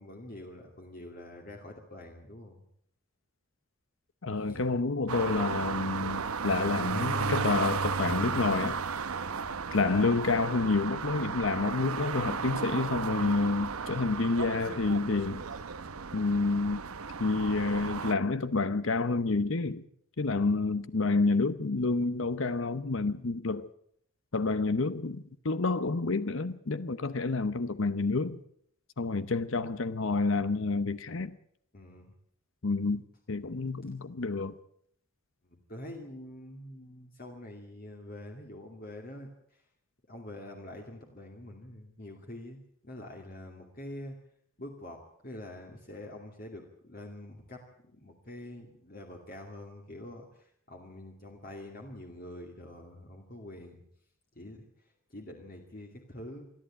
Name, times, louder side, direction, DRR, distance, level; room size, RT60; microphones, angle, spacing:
voice 1, 0.0-2.6 4.3-4.6 9.3-9.6 20.3-20.6 31.7-32.1 33.8-33.9 35.4-39.7 40.1-44.2 44.6-53.8 54.3-56.5, left 1 dB, 40° left, 2.5 m, -46 dB
voice 2, 4.2-8.8 9.7-15.4 16.1-16.8 17.2-19.8 20.2-23.7 24.3-28.4 29.0-31.3 32.6-33.0 33.3-34.6, left 3 dB, 65° left, 0.8 m, -29 dB
sound 1, 5.1-18.1, right 5 dB, 90° right, 0.9 m, -34 dB
27.5 x 11.0 x 8.8 m
head